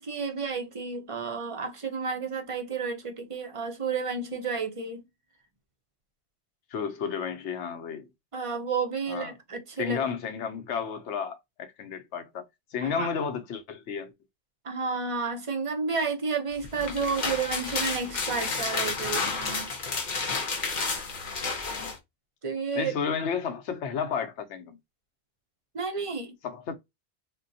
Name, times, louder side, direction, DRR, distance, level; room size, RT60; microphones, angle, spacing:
voice 1, 0.0-5.0 8.3-10.0 12.8-13.1 14.6-19.7 22.4-22.9 25.7-26.3, right 5 dB, 40° right, 0.5 m, -31 dB
voice 2, 6.7-8.1 9.1-9.3 9.8-14.1 22.8-24.8 26.4-26.7, left 6 dB, 85° left, 1.0 m, -32 dB
sound 1, 16.6-22.0, left 4 dB, 45° left, 0.8 m, -31 dB
3.7 x 2.2 x 2.6 m
omnidirectional pair, 1.1 m